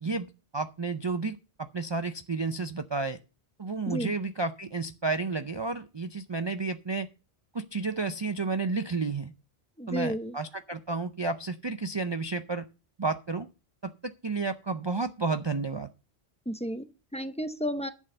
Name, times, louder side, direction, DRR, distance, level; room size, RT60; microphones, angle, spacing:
voice 1, 0.0-3.2 3.6-7.1 7.5-9.3 9.9-12.7 13.0-13.5 13.8-15.9, right 3 dB, 40° right, 9 dB, 0.4 m, -31 dB
voice 2, 9.8-10.4 16.5-16.9 17.1-17.9, equal, 5° left, 9 dB, 0.6 m, -32 dB
11.0 x 6.3 x 6.7 m, 0.33 s
omnidirectional pair, 1.1 m